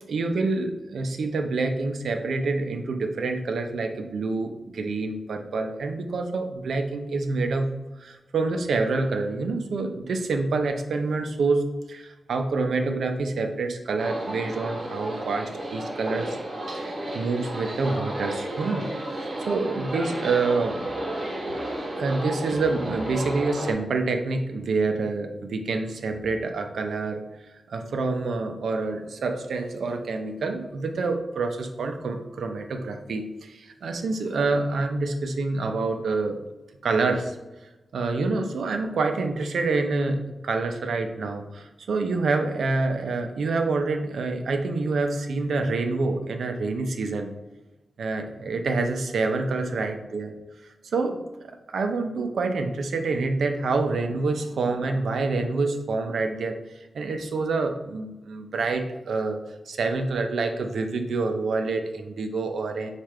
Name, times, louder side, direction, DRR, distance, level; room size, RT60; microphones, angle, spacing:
voice 1, 0.1-7.7 8.0-16.4 16.7-20.8 21.9-27.2 27.7-36.4 36.8-37.4 37.9-47.3 48.0-50.3 50.9-51.2 51.7-56.6 56.9-59.4 59.7-62.9, right 3 dB, 80° right, 5 dB, 0.5 m, -27 dB
sound 1, 14.0-23.7, right 1 dB, 50° right, 0.9 m, -32 dB
4.4 x 2.5 x 4.7 m, 1.1 s
wide cardioid pair, 175°, 0 cm